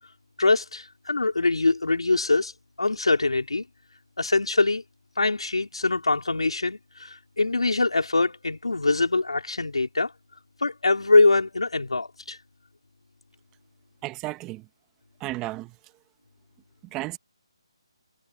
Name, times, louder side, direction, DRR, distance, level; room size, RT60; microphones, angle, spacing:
voice 1, 0.4-2.5 2.8-3.7 4.2-4.8 5.2-10.1 10.6-12.4, left 3 dB, 90° left, 3.6 m, -23 dB
voice 2, 14.0-14.7 15.2-15.9 16.8-17.2, right 19 dB, 15° right, 1.5 m, -34 dB
figure-of-eight pair, 155°, 3 cm